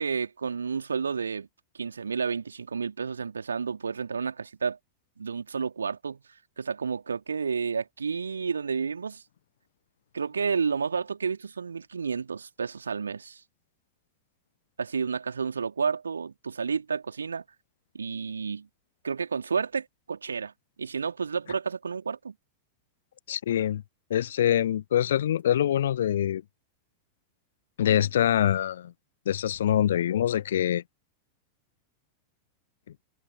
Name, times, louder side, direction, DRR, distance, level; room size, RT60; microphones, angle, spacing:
voice 1, 0.0-1.5 1.7-4.8 5.2-6.2 6.6-9.2 10.1-13.4 14.8-17.4 17.9-18.7 19.0-20.5 20.8-22.3, right 5 dB, 75° right, 2.9 m, -31 dB
voice 2, 23.3-23.8 24.1-26.4 27.8-28.9 29.3-30.8, left 10 dB, 60° left, 0.3 m, -24 dB
figure-of-eight pair, 90°, 0 cm